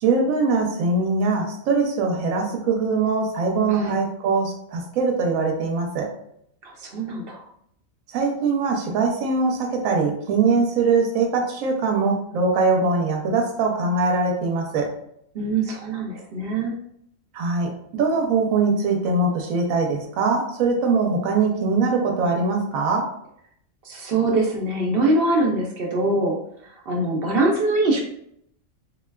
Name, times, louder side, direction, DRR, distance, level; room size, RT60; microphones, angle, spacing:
voice 1, 0.0-6.1 8.1-14.9 17.3-23.1, right 4 dB, 80° right, 0 dB, 1.0 m, -22 dB
voice 2, 6.6-7.4 15.3-16.7 23.8-26.4 26.9-28.0, right 2 dB, 60° right, -1 dB, 0.6 m, -23 dB
3.8 x 2.2 x 2.2 m, 0.72 s
omnidirectional pair, 1.4 m